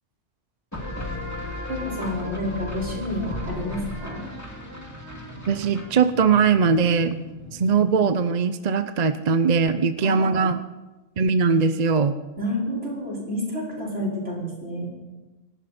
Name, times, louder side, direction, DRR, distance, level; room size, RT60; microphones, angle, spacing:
sound 1, 0.7-8.1, left 2 dB, 15° left, 2.5 m, -35 dB
voice 1, 1.7-4.2 10.0-10.5 12.4-14.9, left 1 dB, 65° right, -5 dB, 5.7 m, -29 dB
voice 2, 5.5-7.2 7.5-10.6 11.2-12.2, right 5 dB, 40° right, 11 dB, 0.6 m, -20 dB
25.5 x 12.0 x 4.3 m, 1.1 s
omnidirectional pair, 1.3 m